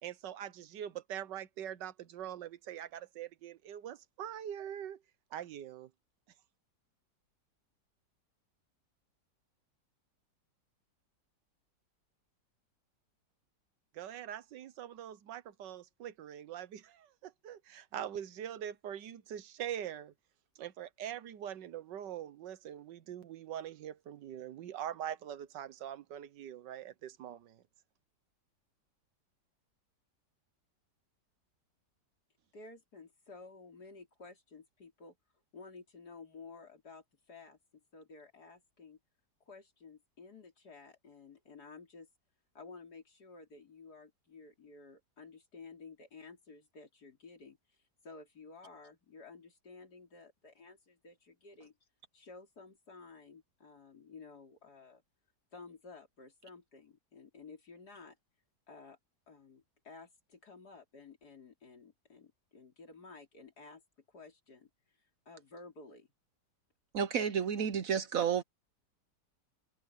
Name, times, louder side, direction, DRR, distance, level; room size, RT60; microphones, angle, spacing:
voice 1, 0.0-5.0 5.3-5.9 13.9-20.1 20.6-27.6, right 10 dB, 85° right, 1.6 m, -43 dB
voice 2, 32.5-35.2 35.5-37.6 37.9-39.0 39.5-42.1 42.5-47.8 48.0-51.7 52.1-55.0 55.5-58.2 58.7-59.0 59.3-63.8 64.1-64.7 65.3-66.1, left 4 dB, 65° left, 4.0 m, -53 dB
voice 3, 66.9-68.4, right 7 dB, 60° right, 1.1 m, -31 dB
omnidirectional pair, 1.8 m